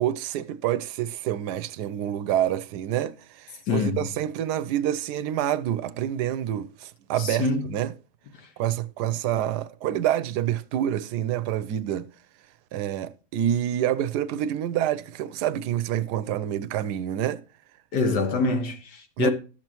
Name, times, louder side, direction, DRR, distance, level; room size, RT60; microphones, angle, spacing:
voice 1, 0.0-7.9 8.6-12.1 12.7-17.4 19.2-19.3, right 11 dB, 80° right, 1.2 m, -27 dB
voice 2, 3.7-4.0 7.2-7.7 17.9-19.3, left 3 dB, 80° left, 1.8 m, -25 dB
11.5 x 7.4 x 3.0 m
omnidirectional pair, 1.8 m